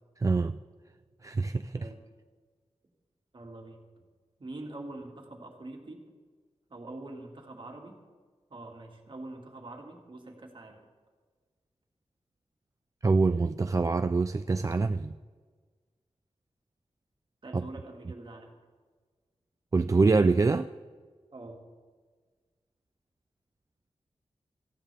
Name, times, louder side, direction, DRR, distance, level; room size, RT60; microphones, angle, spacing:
voice 1, 0.2-0.6 1.2-1.9 13.0-15.2 17.5-17.6 19.7-20.7, right 3 dB, 30° right, 10 dB, 0.3 m, -25 dB
voice 2, 3.3-3.8 4.4-6.0 6.7-8.0 8.5-10.8 17.4-18.5 21.3-21.6, right 2 dB, 45° right, 1 dB, 2.2 m, -44 dB
17.5 x 14.5 x 3.5 m, 1.5 s
wide cardioid pair, 120°, 11 cm